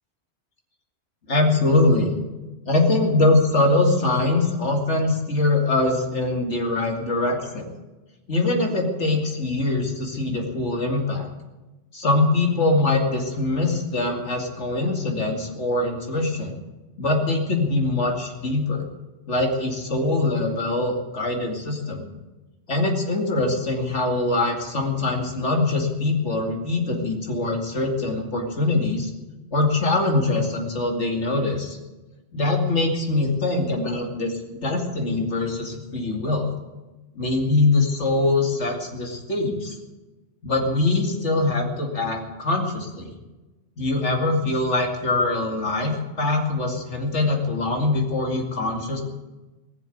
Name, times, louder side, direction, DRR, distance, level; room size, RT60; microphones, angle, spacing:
voice 1, 1.3-2.1 2.6-7.7 8.3-11.3 11.9-16.5 17.0-18.8 19.3-22.1 22.7-29.1 29.5-31.8 32.3-34.3 34.6-36.5 37.1-39.8 40.4-43.1 43.8-49.0, left 2 dB, 75° left, 2 dB, 2.7 m, -23 dB
19.5 x 7.4 x 9.3 m, 1.1 s
omnidirectional pair, 1.2 m